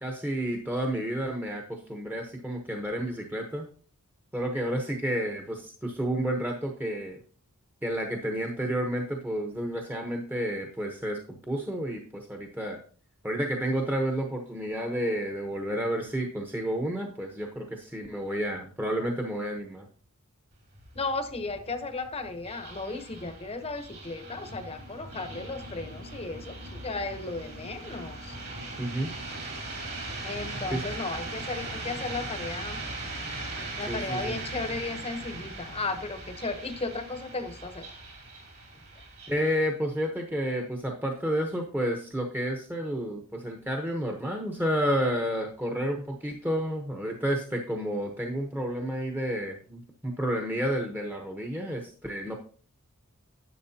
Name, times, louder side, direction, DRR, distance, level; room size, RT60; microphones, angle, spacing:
voice 1, 0.0-3.7 4.3-7.2 7.8-12.8 13.2-19.9 28.8-29.1 30.7-30.8 33.9-34.4 39.3-52.4, equal, 10° right, 2 dB, 1.0 m, -30 dB
sound 1, 20.5-39.5, right 2 dB, 50° right, 2.7 m, -39 dB
voice 2, 20.9-28.4 30.2-32.8 33.8-37.9 39.0-39.1, left 3 dB, 25° left, 7 dB, 1.0 m, -35 dB
11.0 x 7.4 x 2.8 m, 0.40 s
head